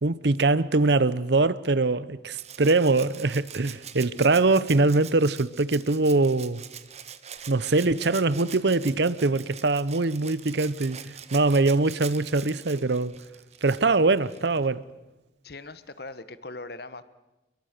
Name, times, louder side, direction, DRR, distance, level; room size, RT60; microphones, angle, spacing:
voice 1, 0.0-6.6 7.5-13.1 13.6-14.8, right 3 dB, 65° right, 0.7 m, -23 dB
Rattle (instrument), 2.4-14.7 16.1-16.2, right 9 dB, 35° right, 1.2 m, -44 dB
voice 2, 15.4-17.0, left 2 dB, 55° left, 1.3 m, -40 dB
30.0 x 22.5 x 6.7 m
head